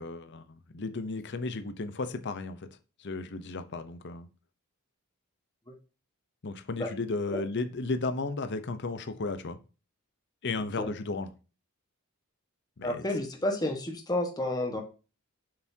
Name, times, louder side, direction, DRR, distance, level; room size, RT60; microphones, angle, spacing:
voice 1, 0.0-2.7 3.0-4.3 6.4-9.6 10.4-11.3 12.8-13.0, left 3 dB, 50° left, 0.7 m, -34 dB
voice 2, 12.8-14.8, left 1 dB, 20° left, 1.4 m, -30 dB
7.1 x 6.8 x 2.8 m
head